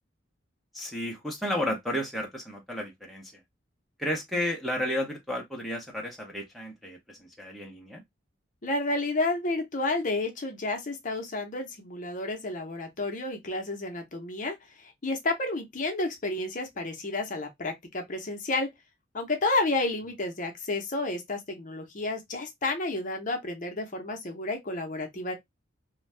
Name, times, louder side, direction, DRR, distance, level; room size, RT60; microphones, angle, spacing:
voice 1, 0.7-3.3 4.0-7.0 7.4-8.0, left 1 dB, ahead, 0.6 m, -32 dB
voice 2, 8.6-18.7 19.1-25.3, left 2 dB, 45° left, 0.7 m, -31 dB
2.6 x 2.2 x 3.2 m
head